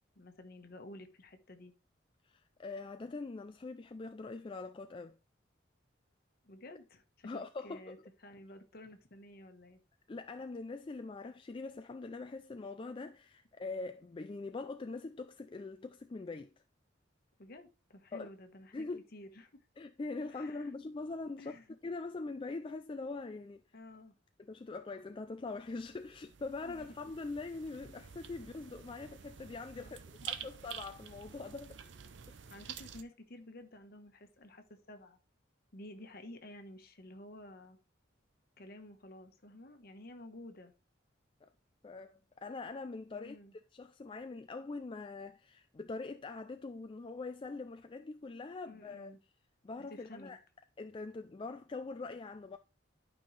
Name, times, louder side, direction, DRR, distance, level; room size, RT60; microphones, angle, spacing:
voice 1, 0.1-1.7 6.4-8.0 8.2-9.8 17.4-18.9 19.1-19.7 20.3-20.7 21.4-21.8 23.7-24.2 26.6-27.0 29.7-29.9 30.2-30.4 31.9-35.2 35.7-37.8 38.6-40.7 43.1-43.5 48.7-49.2 49.8-50.4, left 1 dB, 50° left, 1.2 m, -52 dB
voice 2, 2.2-5.2 7.2-8.0 10.1-16.5 18.1-18.3 18.7-19.0 19.8-21.6 21.8-23.6 24.4-30.0 30.3-31.8 32.3-32.4 41.4-41.5 41.8-43.4 43.7-49.1 49.6-50.4 50.8-52.6, left 3 dB, 25° left, 0.3 m, -43 dB
sound 1, 25.5-33.0, right 8 dB, 65° right, 0.6 m, -49 dB
11.5 x 5.4 x 3.2 m
head